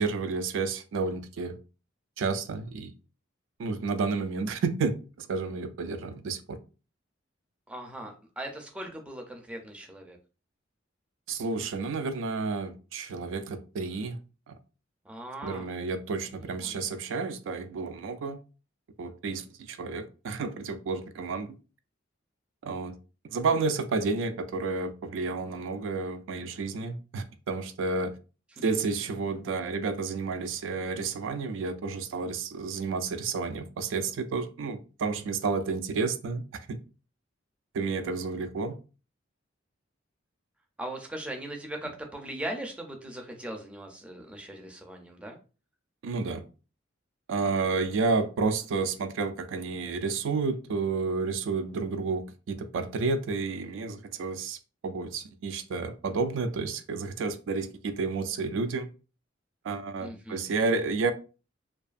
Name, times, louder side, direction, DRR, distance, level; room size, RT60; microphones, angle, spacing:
voice 1, 0.0-1.5 2.2-2.9 3.6-6.6 11.3-14.2 14.5-14.6 15.4-18.4 19.0-21.6 22.6-22.9 23.3-28.1 28.6-36.8 37.7-38.8 46.0-46.4 47.3-58.9 59.6-61.1, right 4 dB, 75° right, 0.3 m, -31 dB
voice 2, 7.7-10.2 15.0-15.7 16.6-16.8 28.7-28.8 40.8-45.4 60.0-60.5, right 1 dB, 5° right, 0.4 m, -39 dB
2.5 x 2.3 x 2.4 m
head